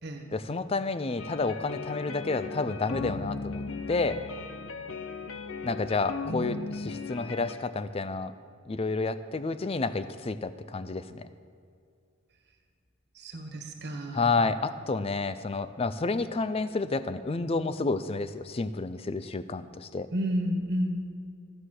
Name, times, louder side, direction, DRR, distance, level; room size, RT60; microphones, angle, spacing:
voice 1, 0.3-3.6 3.9-4.2 5.6-8.3 8.7-11.3 14.1-20.1, left 3 dB, 30° left, 13 dB, 0.4 m, -30 dB
sound 1, 1.2-7.5, left 4 dB, 85° left, 0.9 m, -37 dB
voice 2, 6.2-6.6 13.1-14.3 20.1-21.0, equal, 50° right, 3 dB, 1.5 m, -31 dB
14.5 x 9.9 x 6.5 m, 2.3 s
head